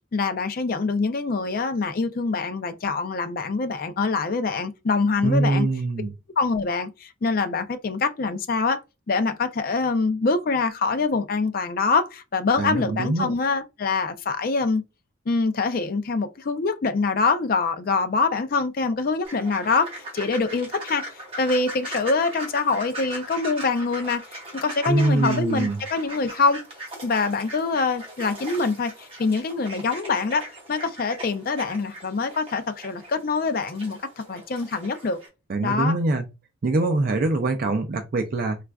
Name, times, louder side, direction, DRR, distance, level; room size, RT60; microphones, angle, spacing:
voice 1, 0.1-5.7 6.4-8.8 9.1-14.8 15.3-21.0 21.4-24.2 24.5-26.6 27.0-34.0 34.3-35.2 35.6-36.0, left 4 dB, 45° left, 0.4 m, -24 dB
voice 2, 5.2-6.1 12.6-13.3 24.9-25.8 35.5-36.3 36.6-38.6, right 2 dB, 45° right, 0.4 m, -23 dB
sound 1, 19.2-35.3, right 1 dB, 30° right, 1.2 m, -39 dB
4.1 x 2.4 x 2.2 m
head